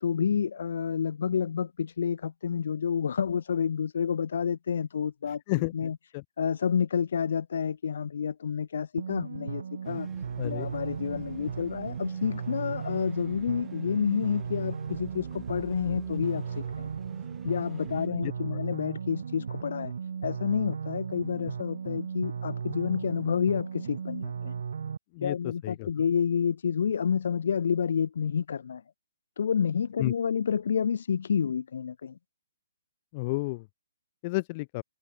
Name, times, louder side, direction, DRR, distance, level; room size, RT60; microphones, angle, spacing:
voice 1, 0.0-5.4 5.7-6.0 6.4-10.1 10.4-16.9 17.4-19.9 20.2-24.5 25.2-28.8 29.4-32.2, left 7 dB, 60° left, 1.2 m, -29 dB
voice 2, 5.3-6.2 10.4-10.7 18.1-18.3 25.1-25.9 30.0-30.1 33.1-33.7 34.2-34.8, left 24 dB, 25° left, 0.5 m, -32 dB
sound 1, 9.0-25.0, right 6 dB, 65° right, 0.9 m, -36 dB
sound 2, 9.8-18.1, right 10 dB, 10° right, 2.6 m, -52 dB
hypercardioid pair, 165°, 0 cm